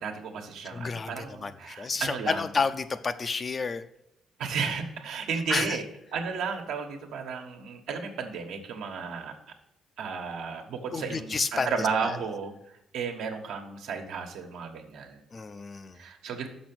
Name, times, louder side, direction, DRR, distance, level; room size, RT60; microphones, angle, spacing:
voice 1, 0.0-2.5 4.4-5.8 6.1-9.3 10.0-12.5 12.9-15.2 16.0-16.5, right 5 dB, 85° right, 3 dB, 1.3 m, -33 dB
voice 2, 0.7-3.8 5.5-5.8 10.9-11.7 12.0-12.2 15.3-16.0, left 4 dB, 35° left, 11 dB, 0.5 m, -30 dB
6.2 x 6.1 x 6.0 m, 0.85 s
cardioid pair, 90°, 0 cm